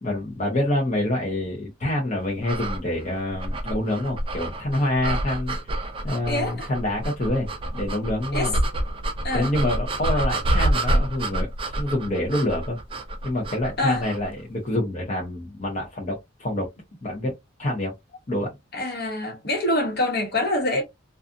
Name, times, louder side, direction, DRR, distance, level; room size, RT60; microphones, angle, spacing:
voice 1, 0.0-7.5 7.7-8.6 9.3-12.8 13.2-16.7 17.0-17.3 17.6-17.9 18.3-18.5, left 1 dB, 35° left, 0.7 m, -27 dB
sound 1, 2.4-14.3, right 1 dB, 25° right, 0.4 m, -28 dB
voice 2, 6.3-6.7 8.3-8.5 9.2-9.5 13.8-14.0 18.7-20.8, left 1 dB, 50° left, 1.1 m, -25 dB
2.5 x 2.3 x 2.5 m
head